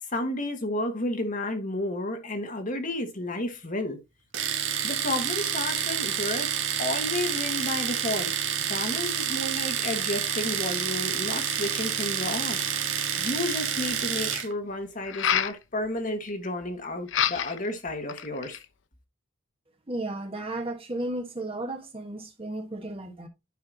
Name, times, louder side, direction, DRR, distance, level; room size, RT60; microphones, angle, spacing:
voice 1, 0.1-4.0 4.8-6.5 6.8-12.7 13.2-18.6, left 1 dB, 40° left, 1.6 m, -32 dB
Domestic sounds home sounds, 4.3-14.5, right 8 dB, 75° right, 1.6 m, -29 dB
sound 1, 15.0-15.6 17.1-17.7 18.1-18.7, left 9 dB, 70° left, 0.6 m, -27 dB
voice 2, 19.9-23.3, right 2 dB, 30° right, 1.4 m, -34 dB
9.6 x 5.7 x 2.8 m
head